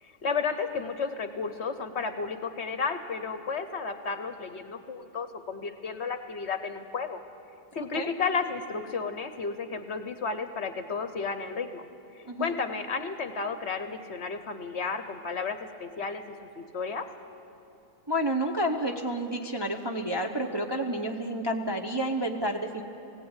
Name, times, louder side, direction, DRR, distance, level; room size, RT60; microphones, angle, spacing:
voice 1, 0.0-7.2 7.7-11.9 12.4-17.1, left 5 dB, 55° left, 9 dB, 1.0 m, -33 dB
voice 2, 18.1-22.8, right 1 dB, 25° right, 2 dB, 0.7 m, -30 dB
18.0 x 17.5 x 8.9 m, 2.7 s
omnidirectional pair, 1.6 m